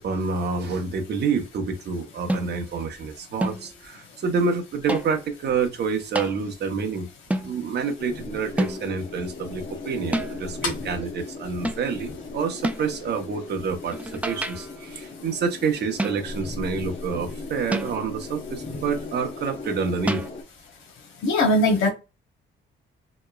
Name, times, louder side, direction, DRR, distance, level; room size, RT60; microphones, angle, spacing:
voice 1, 0.0-7.1 7.4-20.2, right 5 dB, 55° right, 0.8 m, -28 dB
sound 1, 2.3-2.7 3.4-3.8 4.9-5.3 6.1-6.4 7.3-7.6 8.6-9.0 10.1-10.5 11.6-12.0 12.6-13.0 13.9-14.8 16.0-16.5 17.7-18.2 20.1-20.3, right 1 dB, 5° right, 0.3 m, -29 dB
sound 2, 8.0-20.4, left 3 dB, 45° left, 0.7 m, -38 dB
voice 2, 21.2-21.9, left 1 dB, 80° left, 0.9 m, -19 dB
2.9 x 2.1 x 2.3 m
cardioid pair, 90°, 20 cm